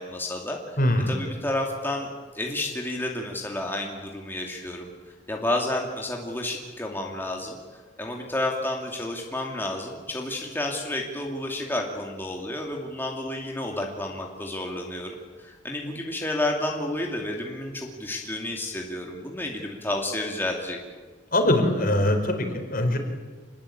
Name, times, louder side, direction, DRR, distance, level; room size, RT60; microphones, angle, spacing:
voice 1, 0.0-0.8 1.1-4.9 5.3-7.6 8.0-20.8, left 1 dB, 10° left, 0 dB, 2.6 m, -31 dB
voice 2, 0.8-1.1 21.3-23.0, left 1 dB, 50° left, 5 dB, 4.5 m, -22 dB
27.5 x 20.5 x 8.7 m, 1.4 s
head